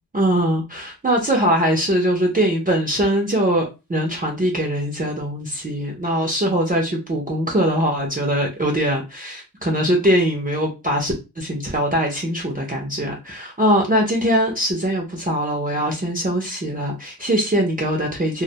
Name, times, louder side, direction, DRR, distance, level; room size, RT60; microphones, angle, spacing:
voice 1, 0.1-18.4, equal, 20° right, 0 dB, 0.5 m, -21 dB
2.1 x 2.1 x 2.7 m, 0.28 s
wide cardioid pair, 95°, 40 cm